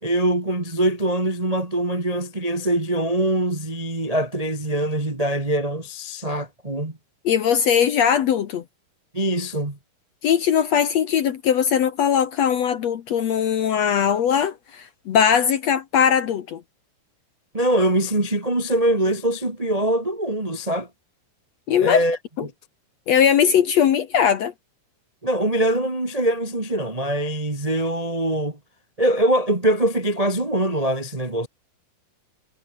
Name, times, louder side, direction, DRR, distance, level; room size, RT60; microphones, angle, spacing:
voice 1, 0.0-7.0 9.1-9.8 17.5-20.9 21.8-22.2 25.2-28.6 29.0-31.5, right 1 dB, 20° right, 1.0 m, -23 dB
voice 2, 7.2-8.6 10.2-16.6 21.7-22.0 22.4-22.5 23.1-24.5, left 8 dB, 70° left, 1.6 m, -20 dB
omnidirectional pair, 4.8 m